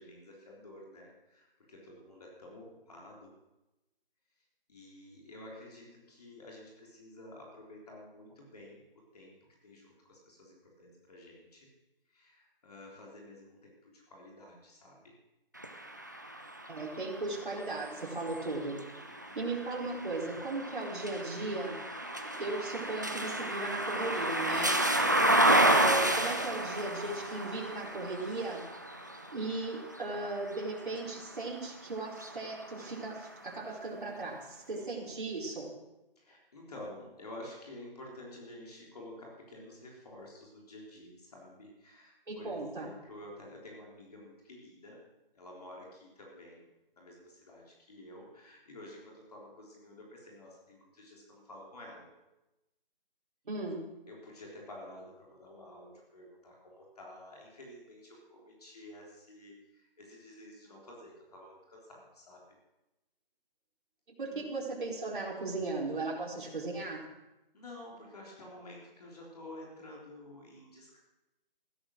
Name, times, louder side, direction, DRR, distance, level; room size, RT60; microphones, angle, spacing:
voice 1, 0.0-3.4 4.7-11.7 12.1-15.2 18.3-19.7 24.9-25.4 36.2-45.0 45.3-46.7 47.0-52.1 54.1-62.6 64.3-64.4 67.5-71.0, left 1 dB, 40° left, -2 dB, 3.6 m, -51 dB
sound 1, 15.6-31.5 32.1-33.3, right 1 dB, 20° right, 0.6 m, -31 dB
voice 2, 16.7-18.8 19.3-21.8 22.4-24.8 25.5-28.6 29.3-35.7 42.3-42.9 53.5-53.8 64.2-67.1, right 2 dB, 55° right, -2 dB, 4.4 m, -37 dB
16.0 x 11.0 x 6.4 m, 0.99 s
figure-of-eight pair, 170°, 29 cm